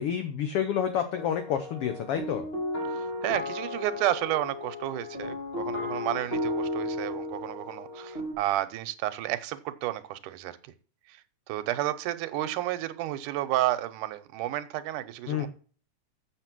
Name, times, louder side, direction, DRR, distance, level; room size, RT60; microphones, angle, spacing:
voice 1, 0.0-2.5 15.3-15.5, left 9 dB, 65° left, 8 dB, 1.5 m, -29 dB
sound 1, 1.1-8.3, left 1 dB, 20° left, 2.8 m, -34 dB
voice 2, 2.9-10.7 11.1-11.2 11.5-15.5, right 14 dB, 85° right, 13 dB, 2.3 m, -31 dB
7.4 x 7.2 x 6.0 m, 0.40 s
omnidirectional pair, 3.5 m